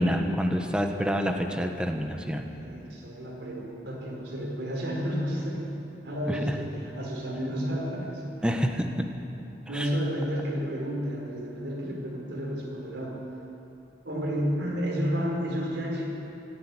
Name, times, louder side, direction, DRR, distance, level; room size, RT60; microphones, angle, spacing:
voice 1, 0.0-2.5 6.3-6.6 8.4-9.1 9.7-9.9, equal, 5° right, 4 dB, 1.3 m, -27 dB
voice 2, 2.5-5.7 6.0-8.5 9.5-13.2 14.0-16.0, equal, 65° right, -2 dB, 4.9 m, -31 dB
25.5 x 10.5 x 9.8 m, 2.9 s
head